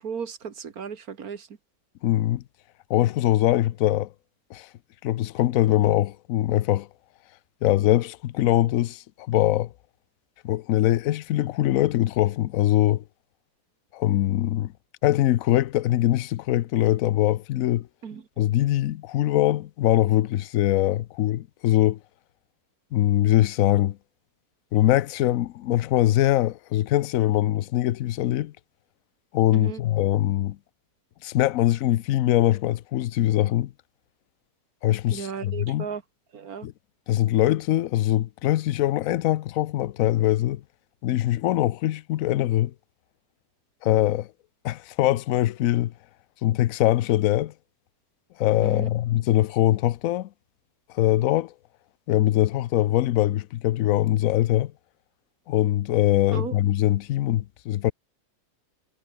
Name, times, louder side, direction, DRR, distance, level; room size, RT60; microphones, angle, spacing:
voice 1, 0.0-1.5 18.0-18.2 29.5-29.8 35.1-36.0 36.3-36.7 48.6-48.9 56.3-56.6, right 6 dB, 70° right, 2.1 m, -35 dB
voice 2, 2.0-2.4 2.9-4.1 4.5-4.7 5.0-6.9 7.6-9.7 10.4-13.0 13.9-14.7 15.0-17.9 18.4-22.0 22.9-24.0 24.7-28.5 29.3-30.6 31.2-33.7 34.8-35.9 36.6-36.7 37.1-40.6 41.0-42.7 43.8-44.3 44.6-45.9 46.4-47.5 48.4-50.3 50.9-51.5 52.1-54.7 55.5-57.9, left 14 dB, 70° left, 1.0 m, -22 dB
omnidirectional pair, 1.6 m